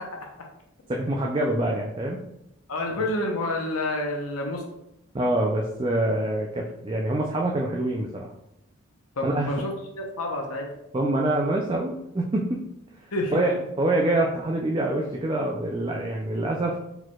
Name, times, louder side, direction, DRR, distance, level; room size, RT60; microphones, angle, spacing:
voice 1, 0.9-2.2 2.9-3.0 5.1-8.3 9.2-9.5 10.9-12.6 13.3-16.8, right 1 dB, 25° right, 0 dB, 0.3 m, -25 dB
voice 2, 2.7-4.6 9.2-10.7 13.1-13.4, left 1 dB, 85° left, 1 dB, 0.8 m, -28 dB
4.5 x 4.3 x 2.3 m, 0.81 s
head